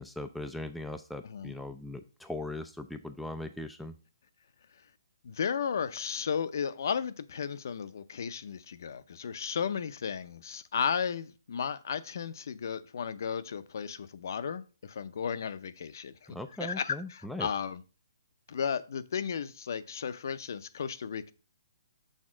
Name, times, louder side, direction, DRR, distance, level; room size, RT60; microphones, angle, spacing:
voice 1, 0.0-3.9 16.3-17.5, left 1 dB, ahead, 0.3 m, -39 dB
voice 2, 5.2-17.8 18.5-21.3, left 7 dB, 60° left, 0.6 m, -34 dB
6.5 x 3.5 x 6.1 m
hypercardioid pair, 160°, 2 cm